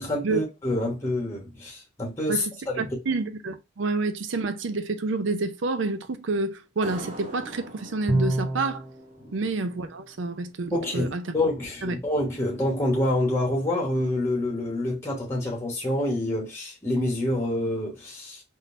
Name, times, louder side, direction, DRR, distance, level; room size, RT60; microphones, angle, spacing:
voice 1, 0.0-2.8 9.2-9.3 10.7-18.4, left 1 dB, 15° left, 1.0 m, -27 dB
voice 2, 2.3-8.8 9.3-11.3 11.8-12.0, right 3 dB, 70° right, 0.5 m, -28 dB
sound 1, 6.8-10.1, right 1 dB, 40° right, 0.8 m, -43 dB
Bowed string instrument, 8.1-9.0, right 1 dB, 5° right, 0.4 m, -25 dB
3.7 x 2.7 x 2.5 m
head